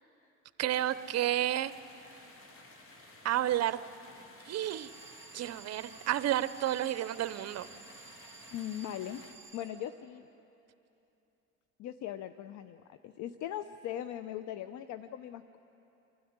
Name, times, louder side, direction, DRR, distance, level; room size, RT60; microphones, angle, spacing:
voice 1, 0.6-1.7 3.2-3.8 4.4-4.9 5.3-7.7, right 12 dB, 55° right, 14 dB, 0.8 m, -31 dB
sound 1, 0.7-9.3, left 2 dB, 45° left, 2.5 m, -55 dB
Alarm, 4.7-10.3, right 5 dB, 10° right, 2.5 m, -53 dB
voice 2, 8.5-9.2 9.5-10.2 11.8-15.6, left 11 dB, 70° left, 11 dB, 0.7 m, -40 dB
27.0 x 12.5 x 9.6 m, 2.9 s
cardioid pair, 90°, 31 cm